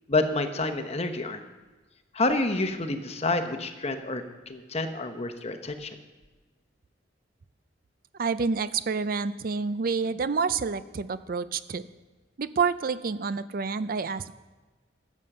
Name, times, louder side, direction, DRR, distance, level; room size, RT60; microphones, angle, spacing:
voice 1, 0.1-1.4 2.1-6.0, left 2 dB, 35° left, 7 dB, 1.0 m, -28 dB
voice 2, 8.2-11.9 12.4-14.3, right 5 dB, 50° right, 14 dB, 0.5 m, -28 dB
15.0 x 7.4 x 6.7 m, 1.3 s
head